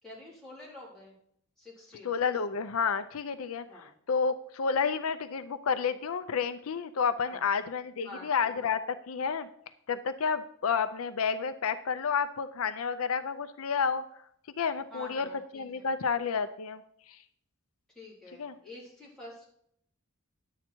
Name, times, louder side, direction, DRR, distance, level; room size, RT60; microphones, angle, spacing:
voice 1, 0.0-1.2 1.6-2.1 3.7-3.9 7.3-7.5 8.0-8.7 14.9-15.9 18.0-19.5, left 1 dB, ahead, -7 dB, 3.8 m, -48 dB
voice 2, 2.0-3.6 4.1-9.5 9.9-14.0 14.6-15.3 15.5-16.8 18.4-18.5, left 6 dB, 75° left, 11 dB, 0.5 m, -30 dB
10.5 x 8.1 x 4.5 m, 0.68 s
head